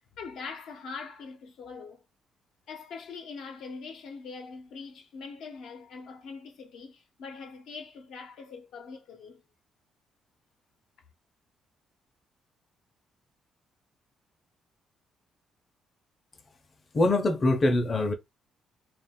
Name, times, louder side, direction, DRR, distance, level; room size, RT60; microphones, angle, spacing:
voice 1, 0.1-2.0 2.7-9.4, left 5 dB, 80° left, 0.7 m, -42 dB
voice 2, 16.9-18.1, left 2 dB, 35° left, 0.6 m, -23 dB
2.5 x 2.0 x 3.6 m
cardioid pair, 90°, 0 cm